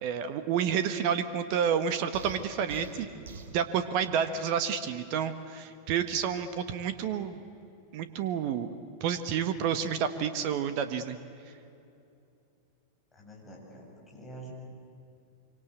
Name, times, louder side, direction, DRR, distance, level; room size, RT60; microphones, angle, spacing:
voice 1, 0.0-3.2 3.5-7.4 7.9-8.7 9.0-11.2, right 8 dB, 45° right, 11 dB, 1.4 m, -30 dB
sound 1, 2.1-3.6, right 4 dB, 60° right, 2.5 m, -44 dB
voice 2, 13.1-14.5, right 2 dB, 15° left, -3 dB, 8.0 m, -47 dB
26.0 x 24.5 x 8.2 m, 2.7 s
figure-of-eight pair, 90°, 0 cm